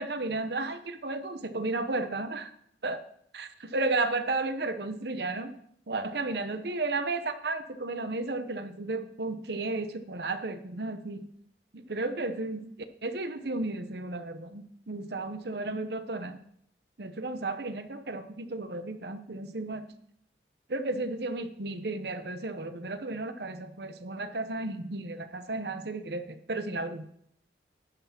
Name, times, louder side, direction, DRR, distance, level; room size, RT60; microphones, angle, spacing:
voice 1, 0.0-2.5 2.8-3.0 3.3-5.5 5.9-11.3 11.7-12.7 13.0-16.4 17.0-19.9 20.7-27.0, right 2 dB, 65° right, 9 dB, 0.9 m, -33 dB
10.5 x 5.9 x 5.9 m, 0.68 s
head